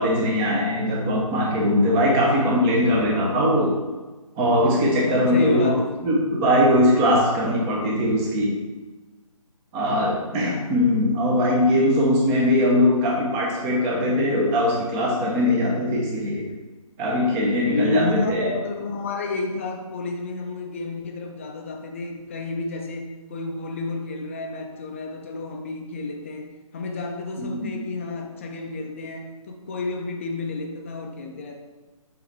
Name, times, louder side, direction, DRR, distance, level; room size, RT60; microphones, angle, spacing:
voice 1, 0.0-3.7 4.4-8.6 9.7-16.5 17.0-18.5 27.4-27.7, left 1 dB, 10° right, -2 dB, 0.8 m, -21 dB
voice 2, 4.6-5.9 10.3-10.7 17.7-31.6, left 3 dB, 20° left, 3 dB, 0.6 m, -30 dB
7.9 x 4.0 x 4.7 m, 1.2 s
figure-of-eight pair, 160°, 18 cm